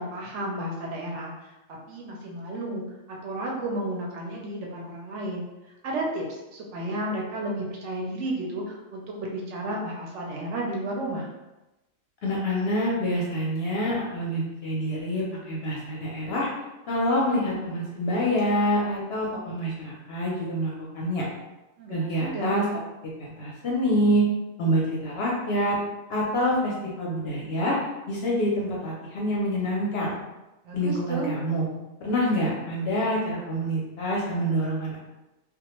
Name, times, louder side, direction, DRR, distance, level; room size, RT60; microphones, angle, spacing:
voice 1, 0.0-1.5 1.9-2.8 3.1-11.3 21.8-22.6 30.6-31.3, right 1 dB, 70° right, -2 dB, 0.8 m, -32 dB
voice 2, 12.2-16.5 16.9-21.2 21.9-22.6 23.2-24.2 24.6-25.8 26.1-27.8 28.1-30.1 30.7-31.6 32.0-35.0, equal, 60° left, -4 dB, 0.7 m, -26 dB
2.3 x 2.1 x 2.9 m, 1.0 s
omnidirectional pair, 1.4 m